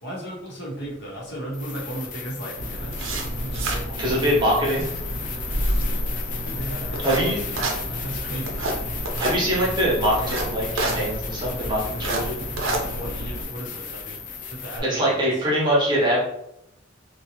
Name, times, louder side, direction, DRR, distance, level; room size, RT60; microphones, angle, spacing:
voice 1, 0.0-3.1 3.4-4.6 6.4-8.6 12.7-14.2 14.5-15.3, right 1 dB, 55° left, -4 dB, 1.0 m, -36 dB
sound 1, 1.5-14.8, left 6 dB, 40° left, 0.4 m, -35 dB
sound 2, 2.6-13.4, right 1 dB, 70° right, 0.5 m, -29 dB
voice 2, 4.0-4.9 7.0-7.4 9.2-12.4 14.9-16.2, equal, 20° right, -5 dB, 0.9 m, -23 dB
2.8 x 2.3 x 2.9 m, 0.77 s
head